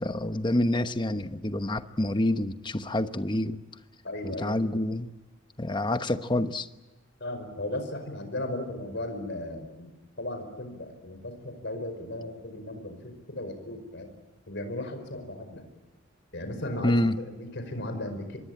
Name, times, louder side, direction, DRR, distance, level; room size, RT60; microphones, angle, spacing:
voice 1, 0.0-3.6 4.2-5.1 5.6-6.7 16.8-17.2, left 1 dB, 25° left, 10 dB, 1.1 m, -27 dB
voice 2, 4.0-4.6 7.2-9.9 10.2-14.1 14.5-15.6 16.3-18.4, left 1 dB, 60° left, 7 dB, 5.2 m, -36 dB
25.5 x 23.0 x 8.8 m, 1.1 s
head